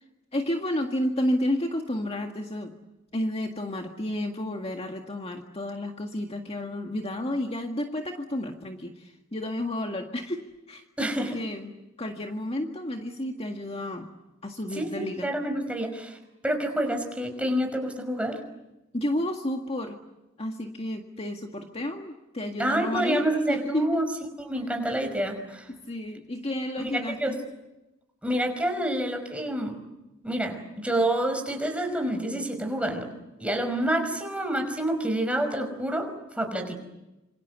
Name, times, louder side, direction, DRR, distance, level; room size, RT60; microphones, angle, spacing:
voice 1, 0.3-2.7 3.1-10.4 10.7-11.7 12.0-14.1 14.4-15.3 18.9-20.0 20.4-24.0 25.7-27.4, left 1 dB, 30° left, 3 dB, 1.9 m, -31 dB
voice 2, 11.0-11.4 14.7-16.2 16.4-18.4 22.6-24.0 24.4-25.7 26.9-27.3 28.2-29.8 30.2-33.1 33.4-36.1 36.3-36.7, right 1 dB, 5° right, 5 dB, 5.4 m, -28 dB
27.0 x 26.5 x 8.2 m, 0.97 s
head